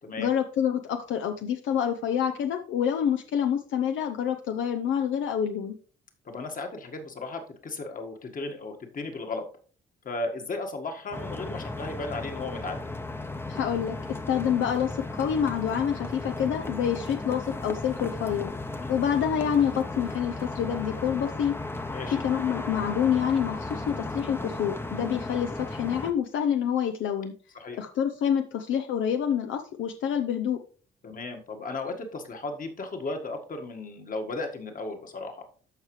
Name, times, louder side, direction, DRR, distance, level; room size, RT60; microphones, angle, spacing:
voice 1, 0.2-5.7 13.5-18.5 18.9-21.6 22.2-27.3 27.8-30.6, left 8 dB, 75° left, 6 dB, 0.7 m, -27 dB
voice 2, 6.2-9.5 10.0-12.9 18.8-18.9 21.9-22.2 27.5-27.8 31.0-35.5, left 3 dB, 45° left, 4 dB, 1.7 m, -35 dB
sound 1, 11.1-26.1, left 2 dB, 10° left, 0.8 m, -35 dB
13.5 x 4.9 x 3.2 m, 0.42 s
cardioid pair, 90°, 20 cm